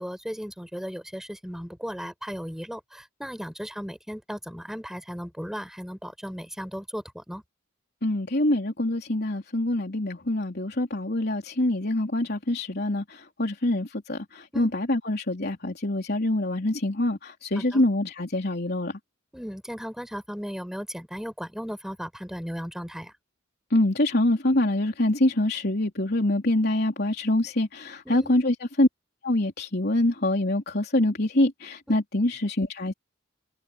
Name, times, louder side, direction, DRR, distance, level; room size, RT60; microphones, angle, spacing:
voice 1, 0.0-7.4 14.5-14.7 17.5-17.8 19.3-23.1 28.1-28.4, equal, ahead, 7.7 m, -36 dB
voice 2, 8.0-18.9 23.7-28.9 29.2-32.9, left 1 dB, 55° left, 3.6 m, -25 dB
head